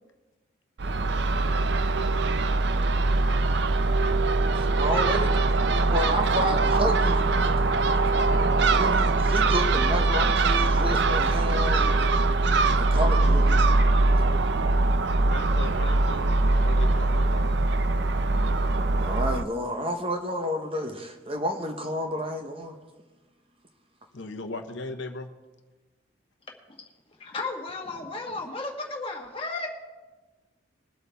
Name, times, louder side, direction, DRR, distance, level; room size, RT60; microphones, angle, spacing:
Crow / Gull seagull, 0.8-19.4, right 3 dB, 60° right, 0.5 m, -22 dB
voice 1, 4.6-7.2 8.6-12.0 12.8-13.7 19.0-22.8, equal, 30° right, 4 dB, 1.0 m, -30 dB
voice 2, 15.3-17.5 24.1-25.3, left 2 dB, 70° left, 6 dB, 1.0 m, -38 dB
voice 3, 27.2-29.7, left 3 dB, 30° left, 1 dB, 1.6 m, -34 dB
21.5 x 8.3 x 3.5 m, 1.2 s
head